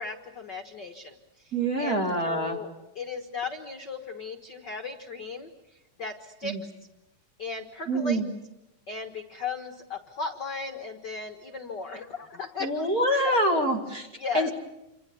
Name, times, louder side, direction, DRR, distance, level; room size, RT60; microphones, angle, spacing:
voice 1, 0.0-6.7 7.4-8.2 8.9-12.9 13.2-13.6 14.2-14.5, left 4 dB, 50° left, 5 dB, 1.3 m, -36 dB
voice 2, 1.5-2.6 6.4-6.6 7.9-8.3 12.6-14.0 14.3-14.5, right 1 dB, 25° right, 2 dB, 2.6 m, -25 dB
28.0 x 26.0 x 7.0 m, 0.93 s
omnidirectional pair, 4.0 m